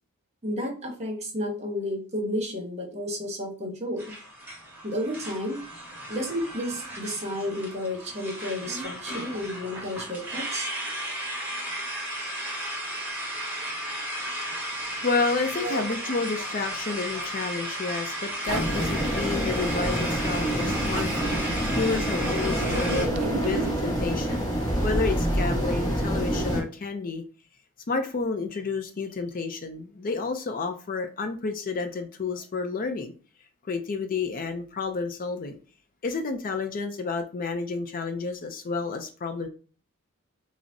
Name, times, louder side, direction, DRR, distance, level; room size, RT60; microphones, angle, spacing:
voice 1, 0.4-4.1 4.8-5.7 6.1-10.7 15.6-15.9, equal, 30° right, 2 dB, 1.0 m, -32 dB
sound 1, 4.0-23.1, right 1 dB, 10° right, 1.2 m, -34 dB
voice 2, 14.8-24.5 24.8-27.2 27.9-33.1 33.6-35.6 36.0-39.5, left 4 dB, 40° left, 7 dB, 0.5 m, -30 dB
sound 2, 18.5-26.6, equal, 15° left, 1.2 m, -27 dB
Zipper (clothing), 18.5-18.9 20.1-21.2 22.6-23.8, right 6 dB, 75° right, 0.3 m, -34 dB
6.0 x 2.0 x 2.6 m, 0.38 s
head